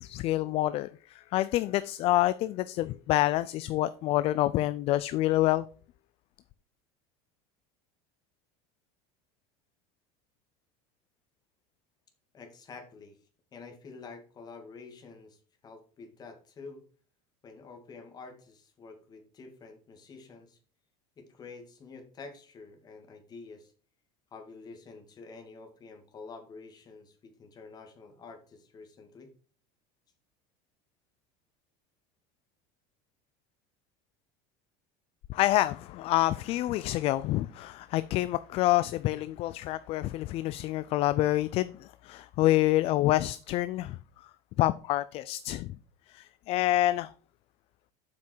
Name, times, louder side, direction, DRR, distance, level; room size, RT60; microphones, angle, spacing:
voice 1, 0.0-5.7 35.3-44.0 44.6-45.7 46.1-47.1, left 15 dB, 45° left, 0.4 m, -27 dB
voice 2, 12.3-13.2 13.5-16.8 17.4-20.6 21.2-23.7 24.3-29.3, left 4 dB, 30° left, 2.1 m, -48 dB
7.7 x 5.8 x 4.5 m
supercardioid pair, 135°, 14 cm